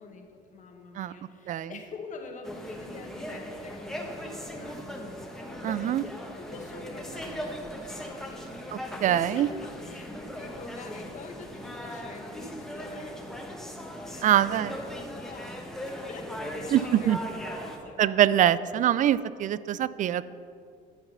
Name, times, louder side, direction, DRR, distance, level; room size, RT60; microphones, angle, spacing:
voice 1, 0.0-13.8 14.1-18.3, left 3 dB, 45° left, 4 dB, 1.5 m, -46 dB
sound 1, 2.4-17.8, equal, 5° left, 1.3 m, -39 dB
voice 2, 5.6-6.0 9.0-9.5 14.2-14.7 16.7-17.2 18.0-20.2, right 11 dB, 50° right, 17 dB, 0.4 m, -23 dB
11.0 x 7.3 x 5.7 m, 2.4 s
cardioid pair, 110°, 17 cm